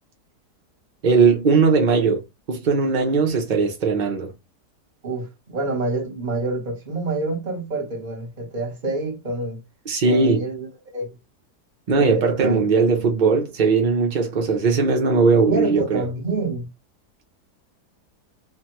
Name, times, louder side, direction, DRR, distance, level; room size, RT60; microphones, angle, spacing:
voice 1, 1.0-4.3 9.9-10.4 11.9-16.1, right 4 dB, 70° right, 0.4 m, -19 dB
voice 2, 5.0-9.6 10.0-11.1 11.9-12.6 15.5-16.7, right 2 dB, 35° right, 0.9 m, -27 dB
3.3 x 2.1 x 2.9 m
omnidirectional pair, 1.7 m